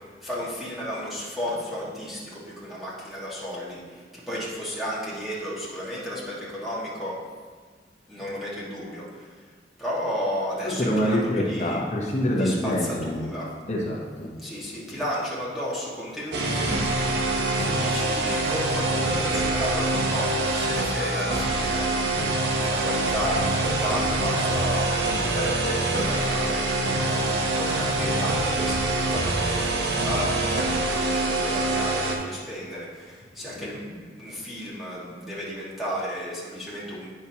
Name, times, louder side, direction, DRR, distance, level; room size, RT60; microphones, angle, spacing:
voice 1, 0.2-2.2 2.6-3.8 4.3-7.1 8.1-9.0 9.8-11.2 11.5-11.8 12.4-12.7 13.0-13.4 14.4-16.8 17.7-21.8 22.6-26.6 27.0-32.9 33.4-37.1, equal, ahead, -8 dB, 1.6 m, -33 dB
voice 2, 10.6-13.3 13.7-14.3 33.4-33.8, equal, 40° left, -2 dB, 0.8 m, -26 dB
sound 1, 16.3-32.2, right 2 dB, 70° right, 0.8 m, -25 dB
8.4 x 5.8 x 2.8 m, 1.6 s
head